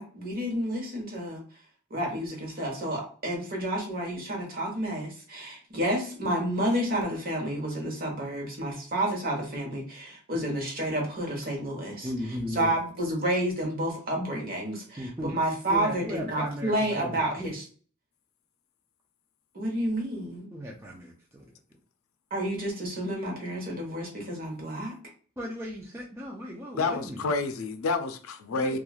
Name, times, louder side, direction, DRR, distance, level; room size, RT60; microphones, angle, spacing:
voice 1, 0.0-1.4 1.9-12.1 12.6-17.6 19.5-20.5 22.3-24.9, right 1 dB, 45° right, 1.0 m, -30 dB
voice 2, 12.0-12.8 15.0-15.3 15.7-17.5 20.5-21.5 25.4-27.3 28.5-28.8, equal, 10° right, 0.4 m, -36 dB
voice 3, 26.8-28.8, left 3 dB, 85° left, 0.5 m, -29 dB
3.0 x 2.3 x 2.3 m
head